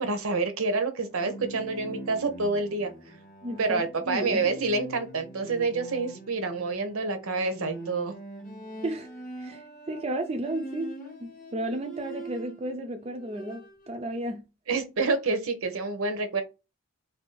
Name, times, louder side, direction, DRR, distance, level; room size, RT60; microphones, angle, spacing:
voice 1, 0.0-2.9 3.6-8.1 14.7-16.4, right 3 dB, 75° right, 0.7 m, -28 dB
Bowed string instrument, 1.0-12.7 13.1-13.9, right 1 dB, 35° left, 0.7 m, -43 dB
voice 2, 3.4-4.6 8.8-9.1 9.4-14.4, right 1 dB, 25° right, 0.3 m, -33 dB
2.6 x 2.3 x 3.8 m
head